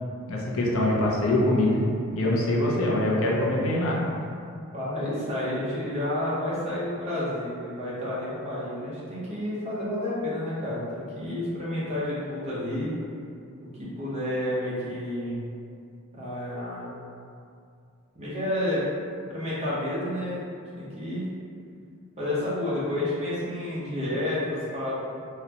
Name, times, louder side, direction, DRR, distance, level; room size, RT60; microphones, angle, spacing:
voice 1, 0.3-1.8 2.1-4.0, left 1 dB, 65° left, -3 dB, 0.5 m, -23 dB
voice 2, 4.7-12.9 13.8-15.4 16.1-16.9 18.1-18.9 19.3-20.4 20.8-21.3 22.2-24.9, left 1 dB, 30° right, -9 dB, 0.8 m, -30 dB
3.8 x 2.1 x 2.8 m, 2.4 s
head